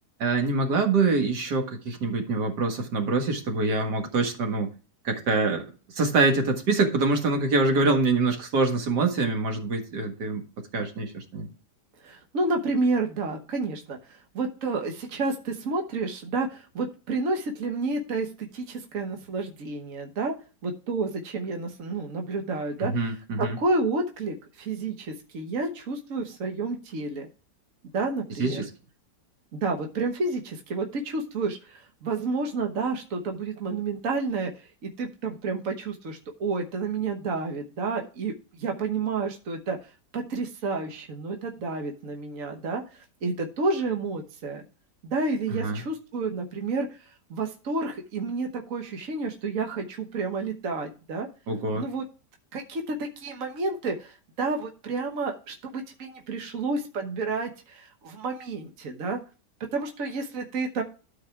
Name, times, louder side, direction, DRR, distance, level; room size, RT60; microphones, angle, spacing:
voice 1, 0.2-4.7 5.0-11.5 22.8-23.6 28.4-28.7 45.6-45.8 51.5-51.8, right 3 dB, 75° right, 4 dB, 2.2 m, -25 dB
voice 2, 12.0-20.3 20.6-23.0 23.4-27.3 27.9-28.6 29.5-39.8 40.1-44.6 45.0-51.3 51.7-52.0 52.5-59.2 59.7-60.8, right 3 dB, 55° right, 3 dB, 1.5 m, -30 dB
12.5 x 4.8 x 4.5 m, 0.35 s
omnidirectional pair, 1.8 m